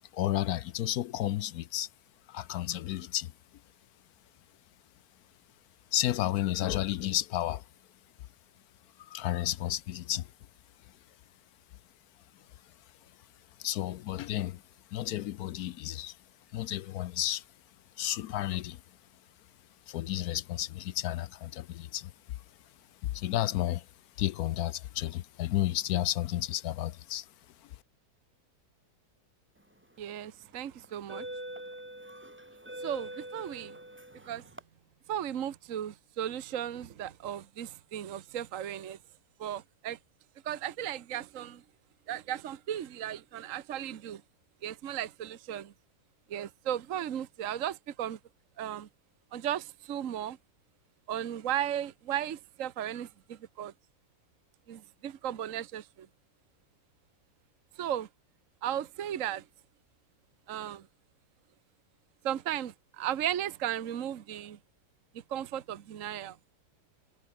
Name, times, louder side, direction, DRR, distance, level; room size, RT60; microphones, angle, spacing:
voice 1, 0.1-1.9 2.3-3.3 5.9-7.6 9.0-10.3 13.6-14.6 14.9-16.2 16.5-17.4 18.0-18.8 19.9-22.1 23.0-23.8 24.2-27.3, left 13 dB, 75° left, 1.1 m, -32 dB
sound 1, 29.8-30.1 30.8-34.6, right 1 dB, 5° right, 2.1 m, -43 dB
voice 2, 30.0-31.3 32.8-33.8 34.2-34.5 35.1-39.0 39.4-40.0 40.4-41.6 42.1-44.2 44.6-45.7 46.3-48.2 48.6-48.9 49.3-50.4 51.1-53.7 54.7-56.1 57.8-58.1 58.6-59.4 60.5-60.9 62.2-64.6 65.3-66.4, right 10 dB, 55° right, 1.3 m, -35 dB
omnidirectional pair, 1.7 m